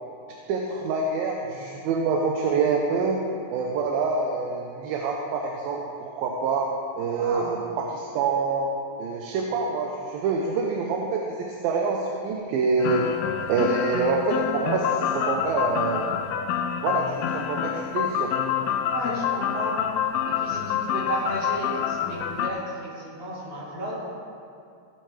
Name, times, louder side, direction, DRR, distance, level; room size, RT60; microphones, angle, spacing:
voice 1, 0.5-3.2 3.5-8.7 9.0-13.1 13.5-16.1 16.8-18.3, right 4 dB, 75° right, 0 dB, 2.5 m, -26 dB
voice 2, 7.1-7.5 18.9-19.9 20.3-24.0, right 1 dB, 50° right, -8 dB, 4.7 m, -33 dB
sound 1, 12.8-22.5, left 9 dB, 90° left, 2.5 m, -27 dB
16.5 x 10.0 x 3.3 m, 2.4 s
omnidirectional pair, 4.4 m